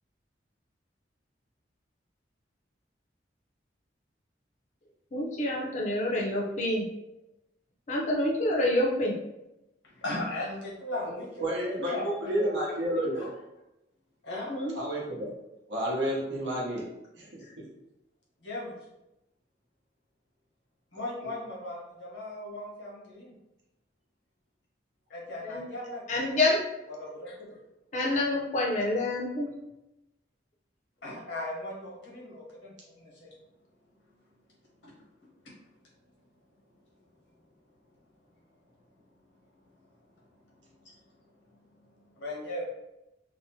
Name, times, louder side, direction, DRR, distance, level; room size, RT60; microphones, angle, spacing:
voice 1, 5.1-6.9 7.9-9.2 14.5-14.8 25.4-25.6 26.1-26.6 27.9-29.5, left 1 dB, 40° left, -1 dB, 0.5 m, -27 dB
voice 2, 10.0-12.5 14.2-14.5 18.4-18.7 20.9-23.3 25.1-26.3 27.0-27.3 31.0-32.7 33.2-33.3 42.2-42.7, left 1 dB, 80° left, -4 dB, 1.0 m, -37 dB
voice 3, 11.1-13.3 14.7-15.3 15.7-16.8 17.2-17.3 21.2-21.3, right 1 dB, 75° right, -4 dB, 0.9 m, -31 dB
2.7 x 2.1 x 2.8 m, 0.91 s
head